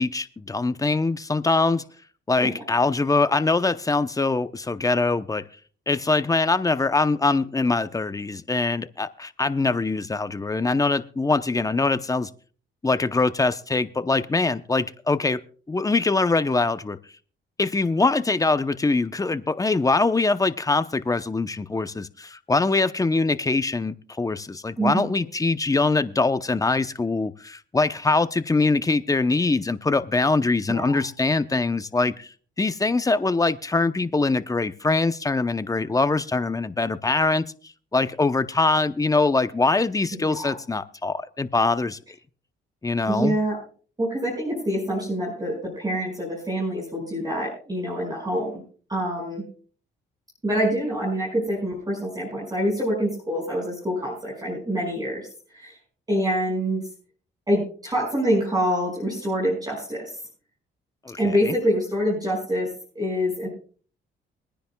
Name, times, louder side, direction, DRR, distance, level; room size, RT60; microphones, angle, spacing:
voice 1, 0.0-1.8 2.3-5.5 5.9-12.3 12.8-15.4 15.7-17.0 17.6-37.5 37.9-42.0 42.8-43.4 61.0-61.5, left 3 dB, 15° left, 0.7 m, -23 dB
voice 2, 24.8-25.2 30.7-31.0 40.1-40.6 43.1-43.6 44.0-48.6 48.9-49.4 50.4-55.3 55.5-55.8 56.1-56.8 57.5-60.1 61.2-62.7 63.0-63.5, equal, 20° right, 5.5 m, -26 dB
24.0 x 10.0 x 2.3 m
cardioid pair, 90°, 20 cm